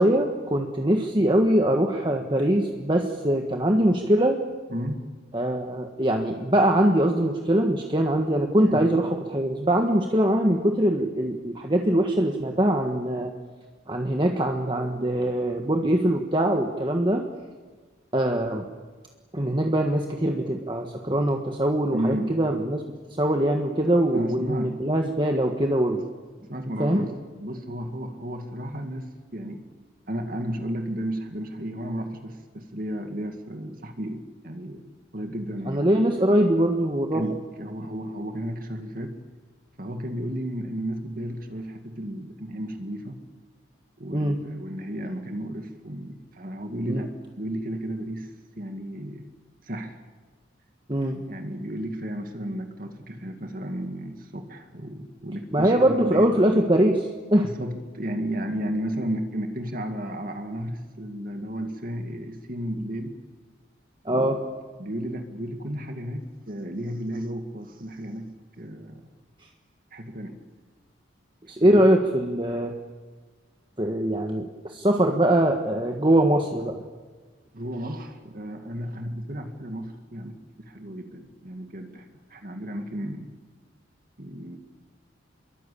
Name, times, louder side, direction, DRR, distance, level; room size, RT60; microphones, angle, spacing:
voice 1, 0.0-4.4 5.3-9.0 9.3-13.3 13.9-17.2 18.1-18.7 19.3-22.8 23.1-26.0 26.8-27.0 35.7-37.2 44.1-44.4 46.9-47.0 50.9-51.2 55.5-57.5 64.0-64.4 71.5-72.7 73.8-76.8, right 1 dB, 25° right, 2 dB, 1.6 m, -22 dB
voice 2, 4.7-5.1 8.6-8.9 21.9-22.3 24.1-24.8 26.5-27.1 27.4-29.6 30.1-35.9 37.1-39.2 39.8-43.2 44.0-48.3 48.6-49.3 49.6-50.0 51.1-56.4 57.4-63.2 64.1-64.4 64.8-69.1 69.9-70.4 71.6-71.9 77.5-83.3 84.2-84.6, equal, 45° right, 5 dB, 2.2 m, -33 dB
28.0 x 22.5 x 8.6 m, 1.4 s
head